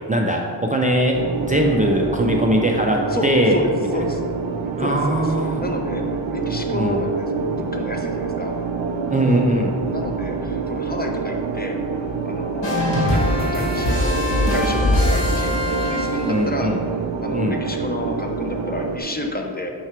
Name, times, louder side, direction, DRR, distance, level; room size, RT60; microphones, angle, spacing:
voice 1, 0.1-3.6 4.8-5.6 6.7-7.0 9.1-9.8 16.3-16.8 17.3-17.6, right 1 dB, 20° right, 0 dB, 0.4 m, -20 dB
sound 1, 1.1-19.0, right 5 dB, 90° right, 0.6 m, -27 dB
voice 2, 3.1-4.2 4.8-8.5 9.8-11.8 12.2-14.2 14.5-19.7, left 2 dB, 20° left, 2 dB, 0.6 m, -30 dB
sound 2, 12.6-16.5, left 1 dB, 70° left, 1.5 m, -21 dB
5.8 x 4.6 x 4.4 m, 2.3 s
wide cardioid pair, 95°, 44 cm